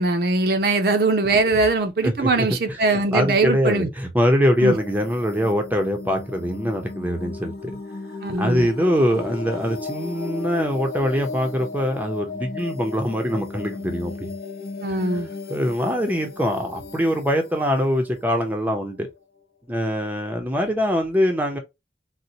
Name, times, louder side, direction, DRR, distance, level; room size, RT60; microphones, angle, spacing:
voice 1, 0.0-3.9 4.6-4.7 8.2-8.7 14.8-15.3, right 3 dB, 60° right, 0.6 m, -21 dB
voice 2, 2.0-2.8 3.1-7.8 8.4-14.3 14.9-19.1 19.7-21.6, equal, 10° right, 0.6 m, -23 dB
sound 1, 4.6-19.2, left 3 dB, 55° left, 0.6 m, -36 dB
4.0 x 2.1 x 2.6 m
head